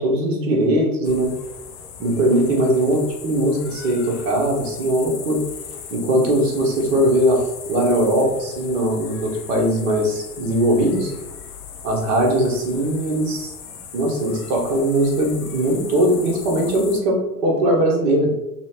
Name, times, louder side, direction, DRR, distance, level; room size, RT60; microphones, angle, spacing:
voice 1, 0.0-1.3 2.0-5.4 5.9-11.1 11.8-13.5 13.9-18.3, right 1 dB, 50° right, -1 dB, 0.9 m, -20 dB
sound 1, 1.0-17.0, left 7 dB, 45° left, 0.5 m, -38 dB
2.9 x 2.0 x 2.9 m, 0.96 s
figure-of-eight pair, 85°, 48 cm